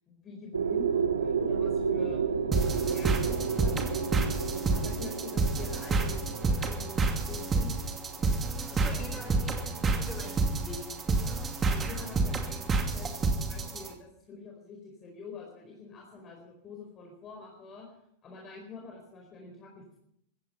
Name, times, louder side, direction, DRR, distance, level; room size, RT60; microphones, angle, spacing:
voice 1, 0.1-4.1 4.7-7.9 8.7-9.3 11.1-17.9 18.2-20.0, left 4 dB, 30° left, 0 dB, 4.7 m, -46 dB
sound 1, 0.5-8.4, right 6 dB, 90° right, 1.5 m, -31 dB
sound 2, 2.5-13.9, right 3 dB, 25° right, 2.7 m, -29 dB
voice 2, 8.6-10.9, left 2 dB, 15° left, 1 dB, 7.0 m, -44 dB
16.5 x 14.5 x 5.6 m, 0.74 s
hypercardioid pair, 100°, 0 cm